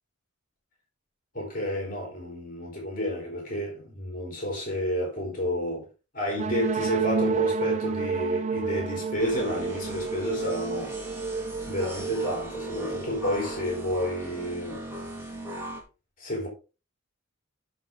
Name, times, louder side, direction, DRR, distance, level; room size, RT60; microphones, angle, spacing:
voice 1, 1.3-5.9 6.1-10.9 11.7-14.8 16.2-16.5, left 1 dB, 40° left, 3.7 m, -30 dB
sound 1, 6.4-14.1, right 4 dB, 35° right, 0.4 m, -30 dB
sound 2, 9.2-15.8, equal, 10° right, 2.5 m, -38 dB
9.5 x 6.1 x 3.8 m
head